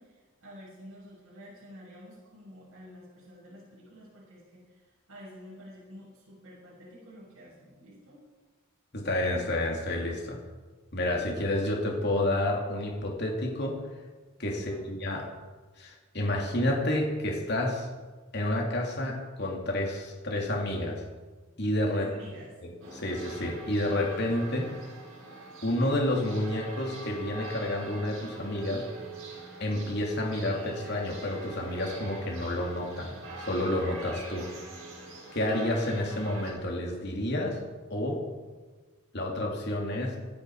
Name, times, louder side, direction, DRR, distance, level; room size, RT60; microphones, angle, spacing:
voice 1, 0.0-8.2 14.5-14.8 21.9-22.5, equal, 85° right, -8 dB, 6.3 m, -49 dB
voice 2, 8.9-10.4 10.9-13.8 14.4-15.3 15.8-17.9 18.3-21.0 21.6-22.1 22.6-24.7 25.6-28.8 29.6-34.5 35.3-37.6 37.9-38.2 39.1-40.2, left 1 dB, 50° left, 0 dB, 3.0 m, -30 dB
sound 1, 22.8-36.5, right 2 dB, 70° right, 5.3 m, -44 dB
25.5 x 9.5 x 5.0 m, 1.4 s
head